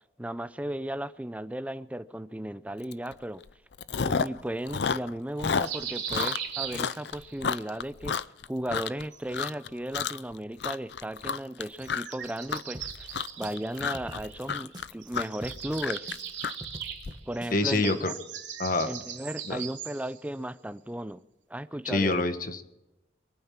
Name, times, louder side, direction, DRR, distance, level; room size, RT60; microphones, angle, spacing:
voice 1, 0.2-3.4 4.0-8.2 8.5-16.1 17.3-18.1 18.8-21.2 21.5-22.2, right 1 dB, 10° right, 0.5 m, -35 dB
Chewing mastication, 2.9-3.1 3.4-4.4 4.7-9.0 9.3-9.7 9.9-10.3 10.6-17.1, left 6 dB, 70° left, 0.5 m, -31 dB
sound 1, 5.6-7.4 8.8-9.8 11.8-14.7 15.0-20.2, right 9 dB, 90° right, 3.1 m, -39 dB
sound 2, 12.7-15.1 15.4-17.8, right 1 dB, 25° right, 1.7 m, -45 dB
voice 2, 17.5-18.1 18.6-18.9 19.5-19.6 21.8-22.6, left 2 dB, 50° left, 1.5 m, -26 dB
23.5 x 9.1 x 6.0 m
head